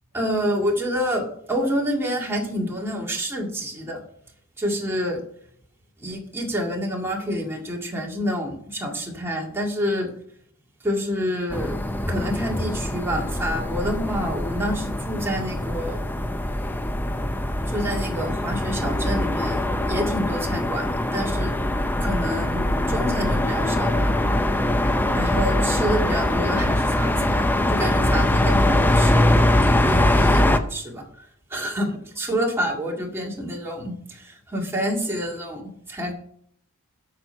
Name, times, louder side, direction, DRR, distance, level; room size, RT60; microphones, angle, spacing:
voice 1, 0.1-4.0 4.6-5.2 6.0-10.1 10.8-11.8 12.1-16.0 17.7-21.5 22.0-24.1 25.1-35.6 35.9-36.1, equal, 10° right, -2 dB, 1.9 m, -28 dB
sound 1, 11.5-30.6, left 1 dB, 10° left, 0.5 m, -22 dB
8.6 x 6.0 x 5.5 m, 0.66 s
head